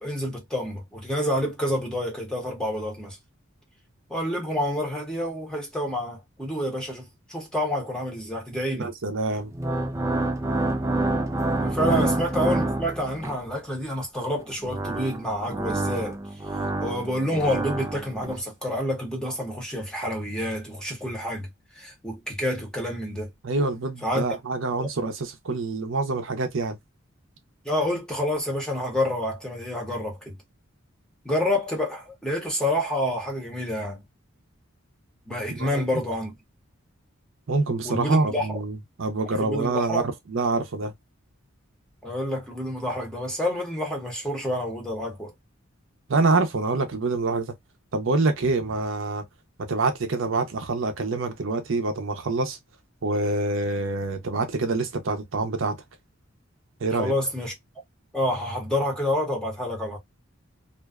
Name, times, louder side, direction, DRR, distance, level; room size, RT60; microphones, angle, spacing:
voice 1, 0.0-3.2 4.1-8.9 11.6-16.2 16.8-21.5 21.7-23.3 24.0-24.2 24.8-24.9 27.6-30.4 31.2-34.0 35.3-36.3 37.8-38.6 39.4-40.0 42.0-45.3 56.9-57.5 58.1-60.0, left 1 dB, 5° left, 0.8 m, -28 dB
voice 2, 8.7-9.5 11.9-12.1 23.4-26.8 35.6-35.8 37.5-40.0 40.3-40.9 46.1-47.5 47.9-49.2 49.7-52.6 53.0-55.8 56.8-57.1, right 3 dB, 60° right, 0.6 m, -26 dB
sound 1, 9.4-13.5 14.4-18.4, right 2 dB, 15° right, 0.3 m, -28 dB
2.5 x 2.2 x 2.2 m
head